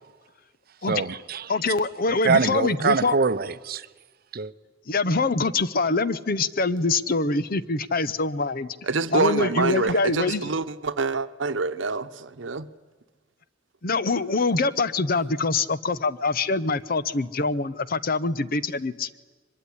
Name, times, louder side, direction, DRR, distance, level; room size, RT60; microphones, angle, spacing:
voice 1, 0.9-1.5 2.2-3.9 4.3-4.5, right 4 dB, 50° right, 0.7 m, -24 dB
voice 2, 1.5-3.2 4.9-8.8 9.1-10.5 13.8-19.1, left 3 dB, 50° left, 0.8 m, -24 dB
voice 3, 8.8-12.7, right 3 dB, 75° right, 1.0 m, -26 dB
23.5 x 21.5 x 10.0 m
head